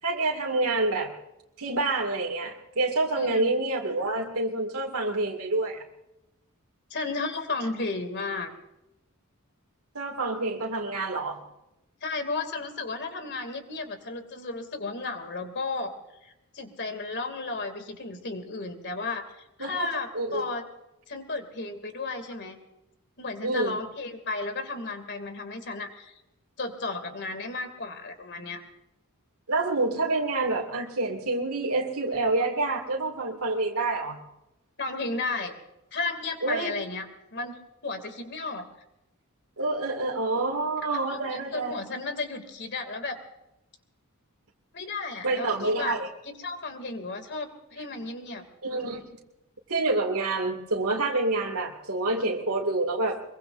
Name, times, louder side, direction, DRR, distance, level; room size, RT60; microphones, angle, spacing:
voice 1, 0.0-1.1 1.6-5.8 9.9-11.4 19.6-20.5 23.4-23.8 29.5-34.2 36.4-36.7 39.6-41.8 45.2-46.1 48.6-49.2 49.7-53.3, right 2 dB, 80° right, 0 dB, 2.2 m, -27 dB
voice 2, 3.2-3.5 6.9-8.5 12.0-15.9 16.2-20.6 21.1-22.6 23.2-26.1 26.6-28.6 34.8-35.6 35.9-38.7 40.9-43.2 44.7-46.0 46.3-48.4, left 3 dB, 50° left, 7 dB, 2.5 m, -34 dB
24.0 x 22.5 x 2.6 m, 0.91 s
head